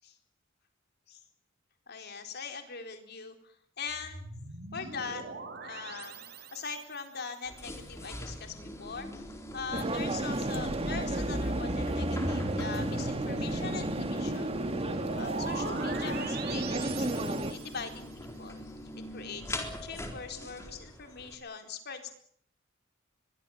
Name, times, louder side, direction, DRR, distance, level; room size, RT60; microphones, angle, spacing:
voice 1, 1.9-4.3 4.7-5.2 5.6-6.2 6.5-14.6 15.0-18.7 19.1-22.1, left 5 dB, 55° left, 6 dB, 4.1 m, -42 dB
sound 1, 3.9-7.0 10.4-18.0, right 1 dB, 55° right, 4.0 m, -40 dB
sound 2, 7.4-21.4, left 1 dB, 15° left, 3.9 m, -42 dB
sound 3, 9.7-17.5, right 2 dB, 30° right, 1.6 m, -33 dB
24.0 x 22.5 x 7.3 m, 0.64 s
head